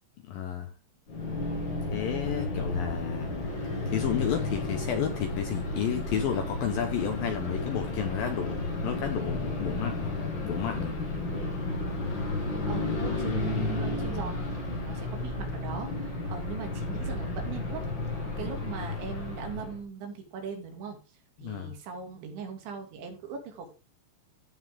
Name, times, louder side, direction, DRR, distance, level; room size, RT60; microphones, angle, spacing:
voice 1, 0.3-0.7 1.9-3.4 3.9-10.2 10.4-11.0 21.4-21.8, left 9 dB, 70° left, 5 dB, 2.3 m, -32 dB
sound 1, 1.1-19.8, left 2 dB, 45° left, 1.5 m, -32 dB
voice 2, 12.7-21.0 21.4-23.7, right 6 dB, 75° right, 3 dB, 4.6 m, -40 dB
16.0 x 5.6 x 3.7 m, 0.32 s
omnidirectional pair, 5.3 m